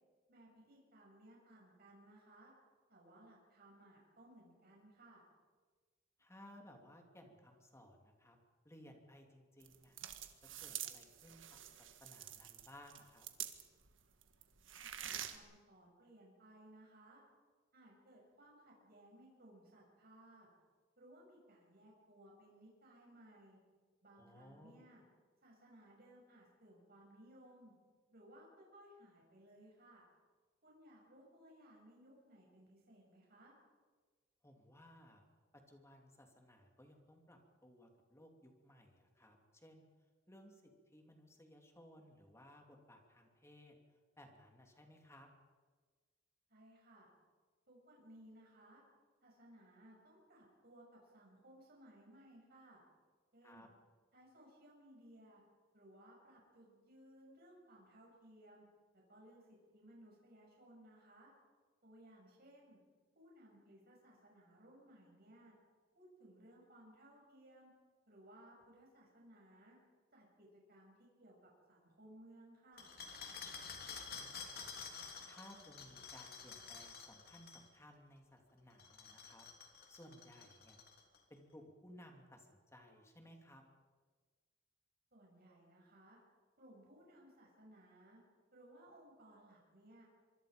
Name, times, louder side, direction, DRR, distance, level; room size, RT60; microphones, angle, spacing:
voice 1, 0.3-2.5 2.9-5.2 14.7-17.2 17.7-20.5 21.0-23.6 24.0-25.0 25.4-27.7 28.1-30.0 30.6-33.5 46.5-47.1 47.7-48.8 49.2-52.8 53.3-53.7 54.1-55.4 55.7-58.7 58.9-61.3 61.8-62.8 63.2-65.5 65.9-67.7 68.1-69.8 70.1-72.9 85.1-86.2 86.6-88.2 88.5-90.0, right 1 dB, 55° right, -2 dB, 7.1 m, -61 dB
voice 2, 6.2-8.4 8.6-10.0 10.4-13.3 24.2-24.9 34.4-35.2 35.7-39.9 40.3-43.7 44.2-45.3 53.4-53.7 73.6-74.7 75.2-79.4 79.9-80.8 81.3-83.6, left 1 dB, 15° left, 3 dB, 3.0 m, -60 dB
sound 1, 9.6-13.9 14.2-15.4, right 11 dB, 80° right, 1.6 m, -47 dB
sound 2, 72.8-77.7 78.7-81.2, left 5 dB, 50° left, 3.2 m, -50 dB
24.5 x 24.5 x 5.2 m, 1.4 s
head